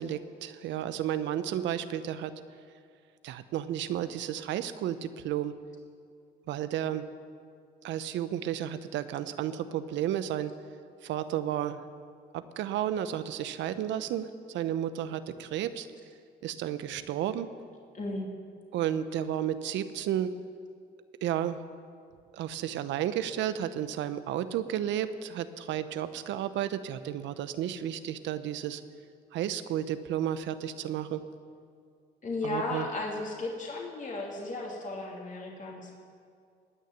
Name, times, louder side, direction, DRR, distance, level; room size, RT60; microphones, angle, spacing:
voice 1, 0.0-2.3 3.2-5.5 6.5-7.1 7.8-10.5 11.0-11.8 12.3-14.3 14.5-15.9 16.4-17.5 18.7-20.3 21.2-21.6 22.3-28.8 29.3-31.2 32.4-32.9, right 11 dB, 80° right, 12 dB, 0.8 m, -32 dB
voice 2, 17.9-18.3 32.2-35.9, left 2 dB, 45° left, -1 dB, 2.8 m, -35 dB
19.0 x 6.5 x 9.3 m, 2.2 s
cardioid pair, 80°, 19 cm